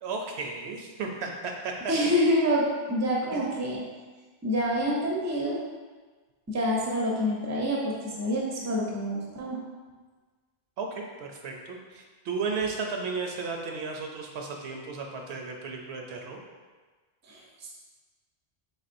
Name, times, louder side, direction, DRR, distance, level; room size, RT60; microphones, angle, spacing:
voice 1, 0.0-1.9 3.3-3.4 10.8-16.4, right 4 dB, 75° right, 1 dB, 0.8 m, -34 dB
voice 2, 1.9-3.8 4.4-5.6 6.5-9.6 17.3-17.7, equal, 20° right, -3 dB, 0.5 m, -27 dB
4.1 x 3.5 x 2.5 m, 1.4 s
omnidirectional pair, 1.1 m